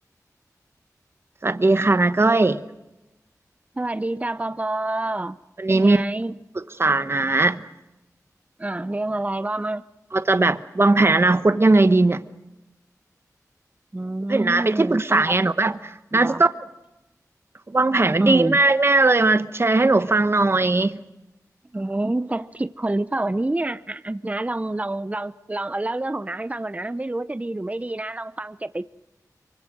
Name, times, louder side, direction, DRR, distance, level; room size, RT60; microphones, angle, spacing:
voice 1, 1.4-2.6 5.6-6.0 6.5-7.7 10.1-12.2 14.3-16.5 17.7-21.0, right 2 dB, 40° right, 12 dB, 1.0 m, -19 dB
voice 2, 3.8-5.4 5.7-6.4 8.6-9.8 13.9-15.4 16.1-16.4 18.2-18.6 21.7-28.8, right 2 dB, 20° right, 14 dB, 0.7 m, -27 dB
24.5 x 24.0 x 6.3 m, 0.97 s
wide cardioid pair, 65°, 6 cm